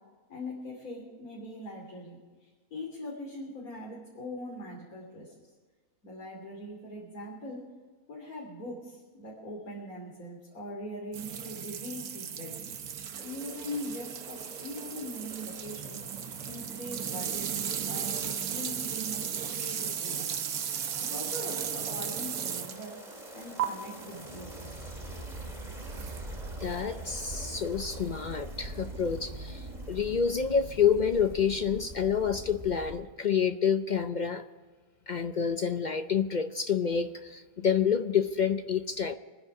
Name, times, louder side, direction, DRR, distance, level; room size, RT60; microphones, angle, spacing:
voice 1, 0.3-5.3 6.0-7.7 8.1-12.6 13.2-16.0 16.5-17.5 17.8-20.3 21.0-23.0 23.3-24.9, left 1 dB, 75° left, -4 dB, 3.6 m, -41 dB
sound 1, 11.1-22.9 23.6-23.7 25.9-26.2, right 8 dB, 90° right, 1.5 m, -35 dB
sound 2, 13.1-33.0, right 2 dB, 30° right, 2.5 m, -44 dB
voice 2, 26.6-34.4 35.1-39.1, left 7 dB, 55° left, 9 dB, 0.5 m, -28 dB
25.5 x 10.0 x 4.8 m, 1.4 s
omnidirectional pair, 1.5 m